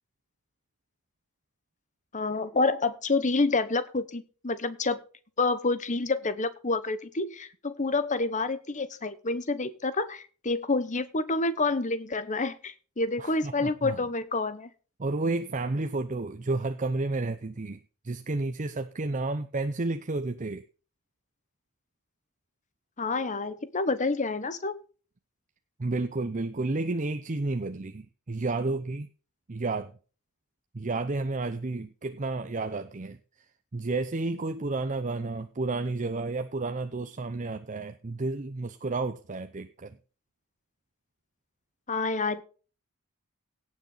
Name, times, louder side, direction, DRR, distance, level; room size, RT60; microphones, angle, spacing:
voice 1, 2.1-5.0 5.4-14.7 23.0-24.8 41.9-42.4, left 3 dB, 35° left, 1.1 m, -28 dB
voice 2, 13.2-14.0 15.0-17.8 18.0-20.6 25.8-29.1 29.5-29.9 30.7-33.2 33.7-40.0, right 3 dB, 35° right, 0.6 m, -31 dB
17.5 x 6.4 x 3.9 m
head